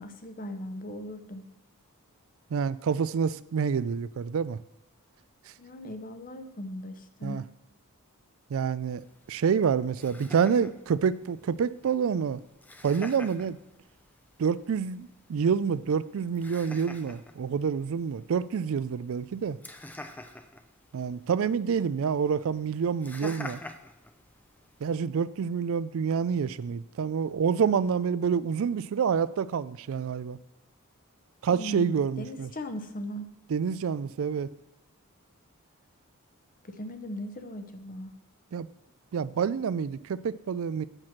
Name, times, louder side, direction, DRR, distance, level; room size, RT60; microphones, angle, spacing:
voice 1, 0.0-1.4 5.6-7.4 31.5-33.3 36.6-38.1, left 1 dB, 40° left, 8 dB, 0.8 m, -39 dB
voice 2, 2.5-4.6 7.2-7.4 8.5-9.0 9.3-12.4 12.8-13.6 14.4-19.6 20.9-23.6 24.8-30.4 31.4-32.5 33.5-34.5 38.5-38.7 39.1-40.8, right 6 dB, 65° right, 18 dB, 0.3 m, -27 dB
Laughter, 9.0-25.0, left 1 dB, 5° left, 0.4 m, -48 dB
8.9 x 6.2 x 5.8 m, 0.90 s
head